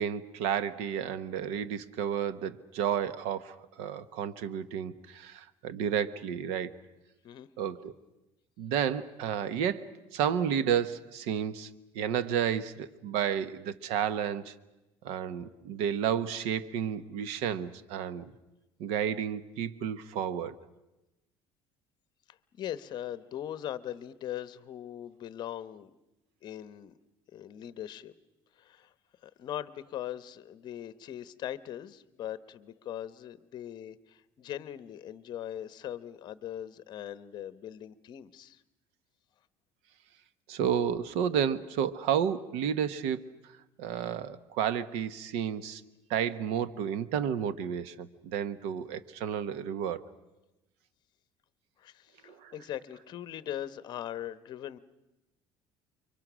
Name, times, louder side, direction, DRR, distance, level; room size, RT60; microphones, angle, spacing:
voice 1, 0.0-6.7 7.6-7.9 8.6-11.7 11.9-14.5 15.0-18.3 18.8-20.5 40.5-43.2 43.8-45.8 46.1-50.0 52.3-52.5, right 8 dB, 85° right, 15 dB, 1.1 m, -31 dB
voice 2, 22.3-25.9 26.4-26.9 27.3-28.1 28.6-28.9 29.2-38.6 51.8-54.8, left 11 dB, 45° left, 15 dB, 1.0 m, -40 dB
29.5 x 24.0 x 6.2 m, 0.99 s
cardioid pair, 145°, 10 cm